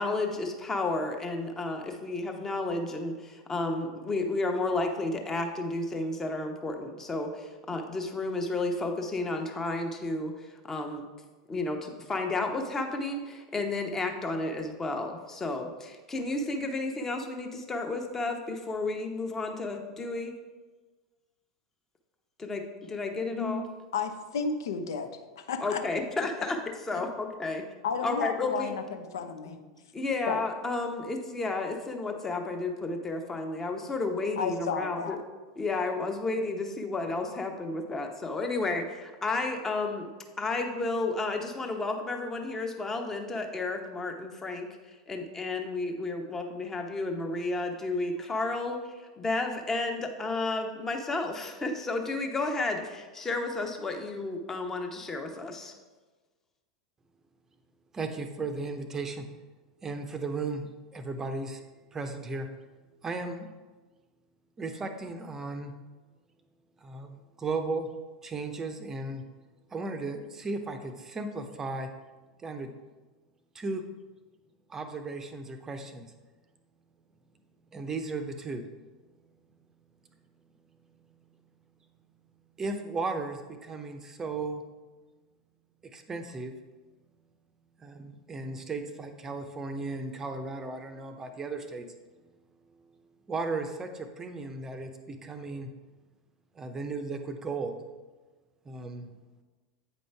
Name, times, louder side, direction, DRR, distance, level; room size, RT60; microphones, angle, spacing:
voice 1, 0.0-11.0 11.5-20.3 22.4-23.6 25.6-26.6 26.8-27.6 28.0-28.8 29.4-29.6 29.9-35.2 35.6-40.1 40.4-55.7, left 2 dB, 15° left, 4 dB, 0.9 m, -32 dB
voice 2, 23.9-25.8 27.8-29.6 30.3-30.4 34.4-35.2, left 5 dB, 65° left, 7 dB, 0.7 m, -32 dB
voice 3, 57.9-59.3 59.8-61.6 61.9-62.5 63.0-63.5 64.6-65.7 66.8-67.9 68.2-69.2 69.7-71.9 72.4-72.7 73.5-73.8 74.7-76.1 77.7-78.7 82.6-84.6 85.9-86.6 87.8-91.9 93.3-95.7 96.5-97.8 98.7-99.1, right 3 dB, 20° right, 7 dB, 0.7 m, -35 dB
8.6 x 5.3 x 3.4 m, 1.3 s
figure-of-eight pair, 85°, 2 cm